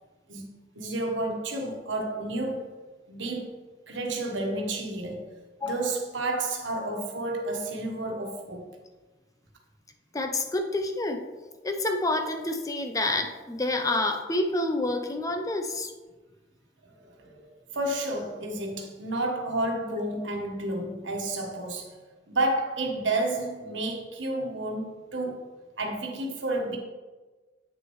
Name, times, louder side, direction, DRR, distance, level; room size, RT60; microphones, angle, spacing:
voice 1, 0.7-2.7 3.1-3.5 3.9-5.3 5.6-8.8 16.8-17.5 17.7-22.0 22.3-25.4 25.8-26.8, right 2 dB, 90° right, 1.3 m, -31 dB
voice 2, 10.1-11.2 11.6-15.9, left 2 dB, 20° left, 0.5 m, -28 dB
8.1 x 6.4 x 3.1 m
head